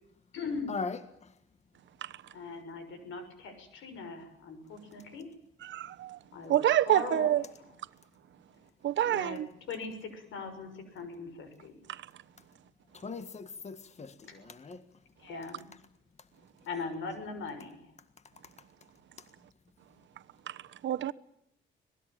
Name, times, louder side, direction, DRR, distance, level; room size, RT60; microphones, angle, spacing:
voice 1, 0.3-0.7 2.3-5.3 6.3-7.3 9.0-9.4 9.7-11.7 15.2-15.7 16.7-17.9, left 4 dB, 80° left, 6.5 m, -40 dB
voice 2, 5.6-6.2 6.5-7.4 8.8-9.5 11.9-12.0 20.5-20.6 20.8-21.1, right 12 dB, 70° right, 1.1 m, -27 dB
voice 3, 12.9-14.8, left 4 dB, 35° left, 1.7 m, -39 dB
25.5 x 19.5 x 9.0 m
cardioid pair, 90°, 20 cm